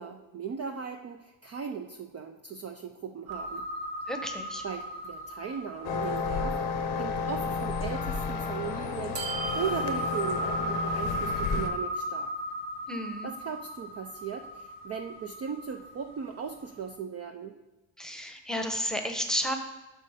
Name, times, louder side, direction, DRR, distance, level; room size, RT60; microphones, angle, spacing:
voice 1, 0.0-3.6 4.6-9.2 9.5-12.3 13.2-17.5, right 7 dB, 35° right, 4 dB, 0.5 m, -38 dB
sound 1, 3.3-8.5 9.2-16.6, equal, 55° right, 1.5 m, -36 dB
voice 2, 4.1-4.6 12.9-13.3 18.0-19.6, equal, ahead, 5 dB, 0.9 m, -32 dB
sound 2, 5.8-11.7, left 5 dB, 85° left, 1.0 m, -32 dB
6.2 x 5.3 x 5.0 m, 1.1 s
supercardioid pair, 85°, 47 cm